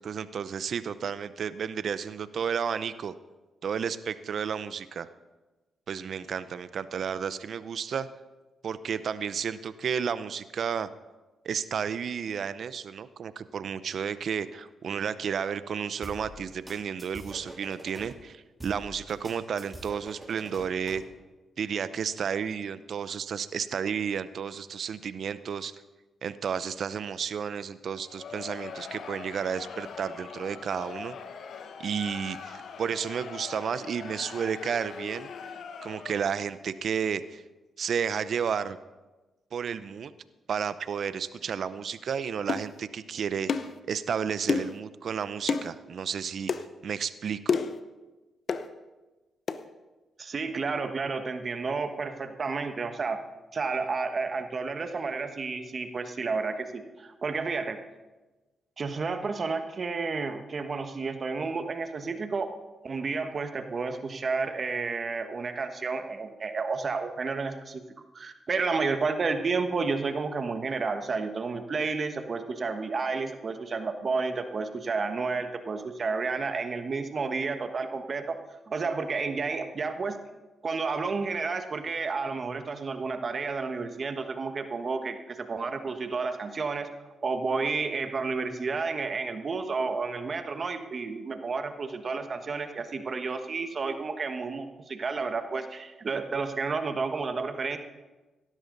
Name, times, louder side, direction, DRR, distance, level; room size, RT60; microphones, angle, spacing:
voice 1, 0.0-3.1 3.6-5.1 5.9-8.1 8.6-10.9 11.4-21.0 21.6-25.7 26.2-31.2 31.8-35.3 35.8-37.4 37.8-38.8 39.5-40.1 40.5-43.5 43.9-46.5 46.8-47.6, right 7 dB, 65° right, 14 dB, 0.6 m, -32 dB
sound 1, 16.0-18.1 18.6-21.1, right 1 dB, 15° right, 3.4 m, -45 dB
Crowd, 27.9-36.4, left 6 dB, 70° left, 1.2 m, -42 dB
sound 2, 42.5-42.7 43.5-43.7 44.5-44.8 45.5-45.7 46.5-46.6 47.5-47.8 48.5-48.7 49.5-49.6, left 5 dB, 55° left, 0.8 m, -28 dB
voice 2, 50.2-53.2 53.5-57.8 58.8-62.5 62.8-67.8 68.1-78.4 78.7-80.2 80.6-86.9 87.2-97.8, right 4 dB, 50° right, 7 dB, 1.4 m, -31 dB
17.5 x 12.5 x 4.0 m, 1.2 s
cardioid pair, 65°, 0 cm